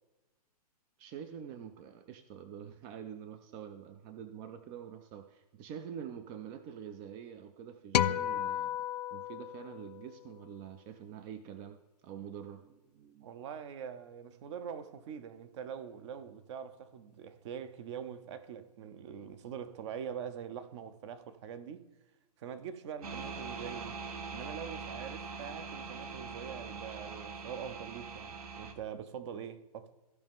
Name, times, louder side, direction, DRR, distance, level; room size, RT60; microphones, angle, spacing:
voice 1, 1.0-8.8 9.1-13.3, right 8 dB, 20° right, 0.3 m, -46 dB
sound 1, 7.9-10.4, left 10 dB, 75° left, 0.4 m, -33 dB
voice 2, 13.2-21.8 22.4-24.0 24.3-29.9, right 8 dB, 45° right, 0.8 m, -44 dB
sound 2, 23.0-28.7, right 5 dB, 65° right, 1.2 m, -42 dB
15.0 x 5.2 x 3.6 m
hypercardioid pair, 135°, 21 cm